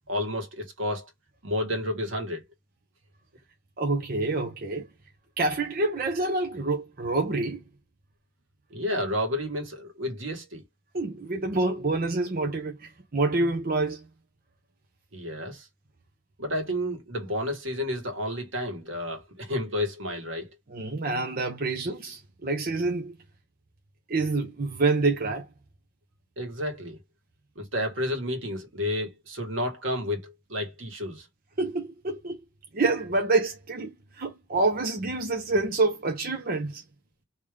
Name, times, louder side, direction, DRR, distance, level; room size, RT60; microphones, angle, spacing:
voice 1, 0.1-1.1 1.4-2.4 8.7-10.6 15.1-15.7 16.4-20.5 26.4-27.0 27.6-31.3, left 1 dB, 75° right, 1.7 m, -31 dB
voice 2, 3.8-4.9 5.4-7.6 10.9-14.0 20.7-23.1 24.1-25.5 31.6-32.4 32.7-36.8, right 3 dB, 50° right, 0.8 m, -27 dB
3.4 x 3.0 x 3.5 m
head